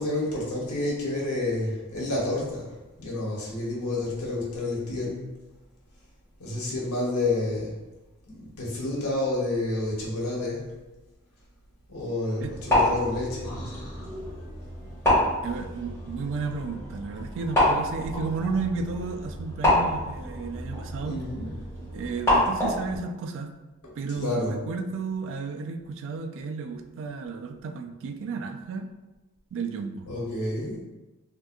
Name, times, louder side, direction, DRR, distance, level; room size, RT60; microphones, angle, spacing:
voice 1, 0.0-2.7 3.0-5.3 6.4-7.7 8.3-10.6 11.9-13.9 21.0-21.5 23.8-24.6 30.1-30.8, left 2 dB, 80° left, -4 dB, 1.0 m, -29 dB
sound 1, 12.4-23.0, left 1 dB, 10° left, 1.5 m, -27 dB
voice 2, 15.4-21.2 21.9-23.6 24.0-28.9 29.5-30.1, right 4 dB, 60° right, 6 dB, 0.3 m, -33 dB
3.6 x 2.7 x 2.4 m, 1.1 s
head